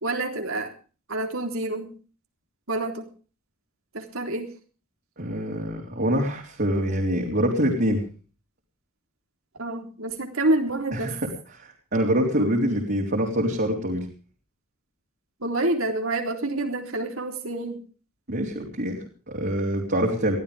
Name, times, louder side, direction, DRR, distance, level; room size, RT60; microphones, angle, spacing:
voice 1, 0.0-0.7 1.1-1.9 2.7-3.1 3.9-4.5 9.6-11.2 15.4-17.8, right 2 dB, 80° right, 4 dB, 3.8 m, -27 dB
voice 2, 5.2-8.0 10.9-11.2 11.6-14.1 18.3-20.4, equal, 50° right, -2 dB, 3.9 m, -25 dB
22.0 x 16.0 x 3.5 m, 0.37 s
head